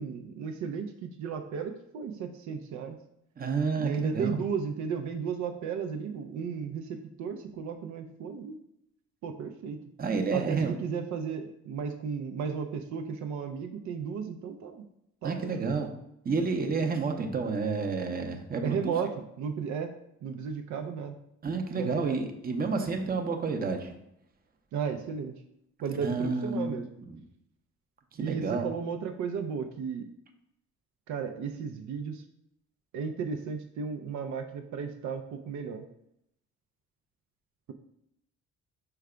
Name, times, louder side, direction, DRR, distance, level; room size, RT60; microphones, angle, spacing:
voice 1, 0.0-3.0 3.8-8.6 9.2-9.8 10.3-14.9 15.2-15.7 18.6-19.9 20.2-21.2 21.8-22.2 24.7-25.3 25.8-26.9 28.2-30.1 31.1-32.2 32.9-35.8, right 6 dB, 70° right, 6 dB, 0.5 m, -34 dB
voice 2, 3.4-4.4 10.0-10.8 15.2-15.9 16.2-18.9 21.4-23.9 26.0-27.2 28.1-28.7, right 4 dB, 30° right, 4 dB, 0.7 m, -30 dB
4.7 x 2.2 x 4.8 m, 0.79 s
cardioid pair, 90°, 30 cm